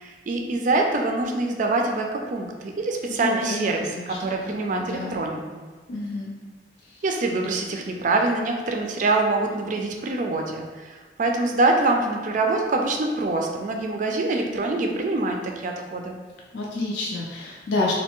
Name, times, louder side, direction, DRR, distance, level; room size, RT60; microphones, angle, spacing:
voice 1, 0.0-5.6 7.0-16.2, right 2 dB, 45° right, 2 dB, 0.4 m, -25 dB
voice 2, 3.1-4.2 4.4-5.2 5.9-6.3 6.8-7.0 16.5-17.9, left 2 dB, 65° left, -3 dB, 0.4 m, -30 dB
3.3 x 2.6 x 2.9 m, 1.4 s
head